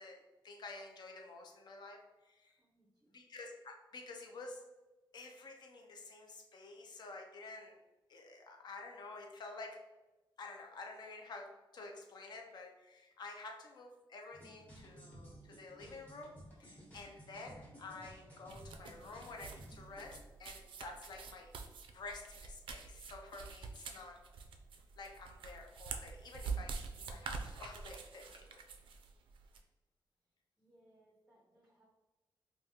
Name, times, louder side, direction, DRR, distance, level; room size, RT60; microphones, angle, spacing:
voice 1, 0.0-2.5 3.1-4.6 5.1-7.8 8.1-9.8 10.4-11.5 11.7-16.3 16.6-21.5 21.9-24.2 25.0-28.6, left 3 dB, 55° left, 3 dB, 0.5 m, -50 dB
voice 2, 2.6-3.1 30.6-31.9, right 1 dB, 10° right, -3 dB, 0.5 m, -69 dB
sound 1, 14.3-20.2, right 1 dB, 20° left, 1.0 m, -55 dB
sound 2, 18.5-29.6, right 5 dB, 75° right, 0.4 m, -46 dB
3.5 x 2.3 x 2.8 m, 1.1 s
wide cardioid pair, 165°, 9 cm